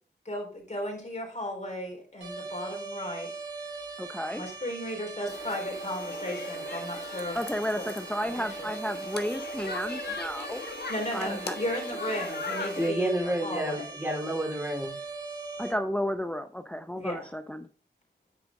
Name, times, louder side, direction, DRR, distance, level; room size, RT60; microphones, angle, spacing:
voice 1, 0.2-3.3 4.4-7.4 7.7-7.9 8.6-8.7 10.9-13.9 17.0-17.3, left 1 dB, 40° left, 1 dB, 3.9 m, -35 dB
sound 1, 2.2-15.7, right 3 dB, 80° right, 2.9 m, -40 dB
voice 2, 4.0-4.4 7.3-10.6 11.1-11.6 15.6-17.7, equal, 5° left, 9 dB, 0.6 m, -32 dB
sound 2, 5.3-12.9, left 3 dB, 65° left, 1.5 m, -39 dB
voice 3, 12.8-15.0, right 1 dB, 10° right, 1 dB, 3.2 m, -30 dB
9.5 x 5.0 x 3.7 m, 0.42 s
cardioid pair, 45°, 18 cm